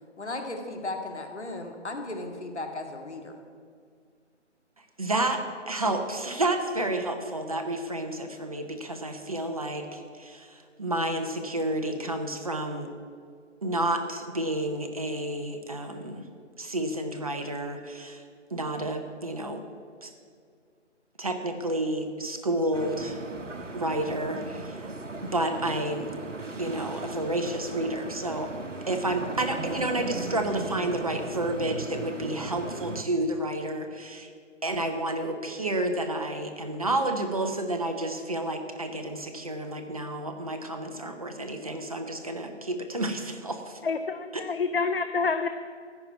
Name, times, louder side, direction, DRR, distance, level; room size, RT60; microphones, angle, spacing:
voice 1, 0.2-3.4, left 2 dB, 65° left, 4 dB, 2.2 m, -36 dB
voice 2, 5.0-12.9 13.6-16.2 16.6-18.2 18.5-19.6 20.0-20.1 21.2-23.2 23.7-24.9 25.2-26.1 26.6-28.5 28.9-34.3 34.6-43.8 44.3-44.4, right 1 dB, 30° right, 6 dB, 0.8 m, -30 dB
sound 1, 22.7-33.0, right 3 dB, 90° right, 1.0 m, -37 dB
voice 3, 43.8-45.5, left 4 dB, 50° left, 8 dB, 0.6 m, -27 dB
14.5 x 5.9 x 9.3 m, 2.1 s
figure-of-eight pair, 155°, 36 cm